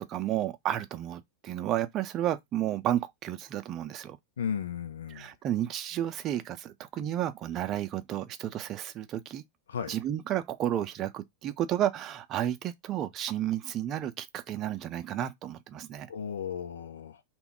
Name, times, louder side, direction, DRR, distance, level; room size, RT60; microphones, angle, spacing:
voice 1, 0.1-4.2 5.2-9.4 9.9-16.1, right 11 dB, 35° right, 0.5 m, -32 dB
voice 2, 4.4-5.3 9.7-10.0 16.1-17.2, left 7 dB, 75° left, 0.4 m, -35 dB
2.2 x 2.1 x 3.7 m
hypercardioid pair, 95°, 0 cm